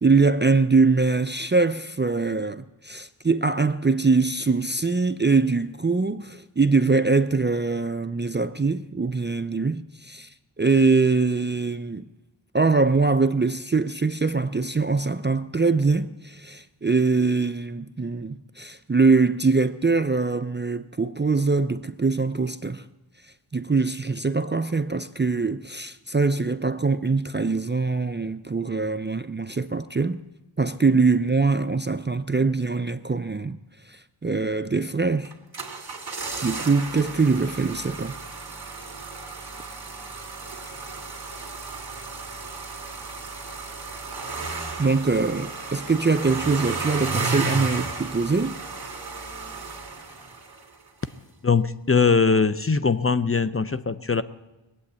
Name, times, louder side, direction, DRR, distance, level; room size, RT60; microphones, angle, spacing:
voice 1, 0.0-12.1 12.5-22.9 23.5-30.2 30.6-33.6 33.9-35.3 36.4-38.2 44.8-48.6, right 4 dB, 25° right, 0.5 m, -23 dB
sound 1, 35.2-50.7 51.0-51.1, right 4 dB, 50° right, 2.3 m, -34 dB
voice 2, 51.4-54.2, left 5 dB, 30° left, 0.6 m, -21 dB
20.5 x 8.5 x 8.1 m
wide cardioid pair, 50°, 47 cm